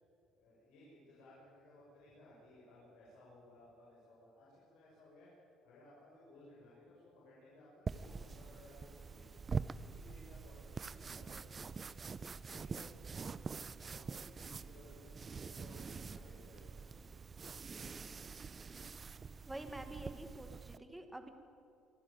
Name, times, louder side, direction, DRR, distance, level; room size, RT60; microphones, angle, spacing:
voice 1, 0.3-5.3 5.6-9.2 9.5-12.0 12.4-13.0 13.8-16.7, left 1 dB, 70° left, -6 dB, 7.1 m, -60 dB
sound 1, 7.9-20.8, right 5 dB, 20° right, 0.5 m, -45 dB
voice 2, 19.5-21.3, right 1 dB, 5° right, 6 dB, 1.4 m, -47 dB
25.0 x 15.0 x 9.0 m, 2.6 s
cardioid pair, 170°, 0 cm